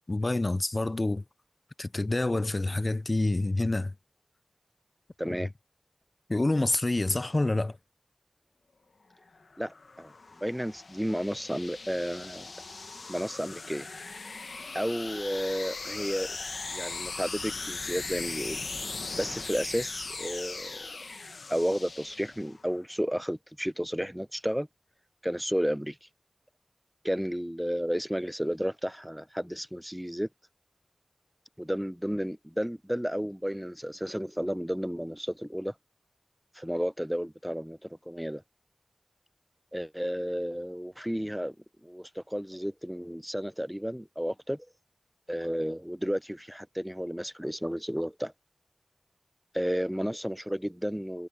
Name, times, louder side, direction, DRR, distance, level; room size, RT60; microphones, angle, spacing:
voice 1, 0.1-1.2 1.8-3.9 5.3-5.4 6.3-7.8, left 2 dB, 45° left, 0.5 m, -27 dB
voice 2, 5.2-5.5 9.6-10.1 10.4-12.5 13.1-13.9 14.7-18.6 19.1-20.9 21.5-24.7 25.2-26.0 27.0-30.3 31.6-35.7 36.5-38.4 39.7-41.6 41.8-44.7 45.3-48.3 49.5-51.3, equal, 5° right, 0.6 m, -32 dB
sound 1, 9.3-22.7, left 3 dB, 80° left, 1.0 m, -39 dB
cardioid pair, 40°, 0 cm